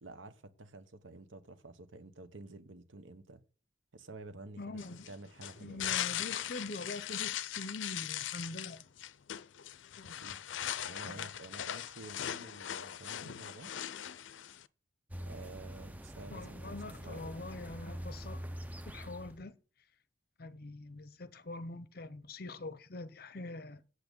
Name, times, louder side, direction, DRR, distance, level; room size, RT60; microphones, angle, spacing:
voice 1, 0.0-3.4 3.9-5.9 10.0-10.4 10.8-13.7 15.2-16.8 17.0-17.5, right 2 dB, 85° right, 1.2 m, -50 dB
voice 2, 4.6-5.1 5.6-8.8 10.0-10.2 11.0-11.3 16.3-18.4 18.9-19.6 20.4-23.8, left 2 dB, 50° left, 0.8 m, -44 dB
sound 1, 4.8-14.7, left 11 dB, 80° left, 0.5 m, -39 dB
sound 2, 15.1-19.4, equal, 10° right, 0.6 m, -44 dB
8.3 x 7.9 x 5.3 m
head